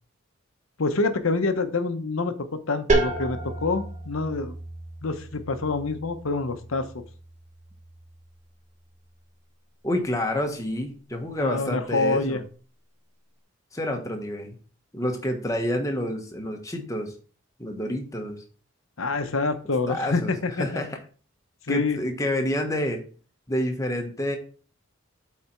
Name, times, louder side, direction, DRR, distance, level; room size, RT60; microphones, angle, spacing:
voice 1, 0.8-4.5 5.0-6.9 11.4-12.4 19.0-20.8 21.7-22.0, left 3 dB, 75° left, 9 dB, 0.9 m, -26 dB
sound 1, 2.9-8.4, right 2 dB, 35° right, 1.2 m, -31 dB
voice 2, 9.8-12.4 13.7-14.5 14.9-17.1 17.6-18.4 19.9-20.3 20.6-21.0 21.7-23.0 23.5-24.4, left 1 dB, 15° left, 4 dB, 1.1 m, -28 dB
8.2 x 4.2 x 4.5 m, 0.40 s
head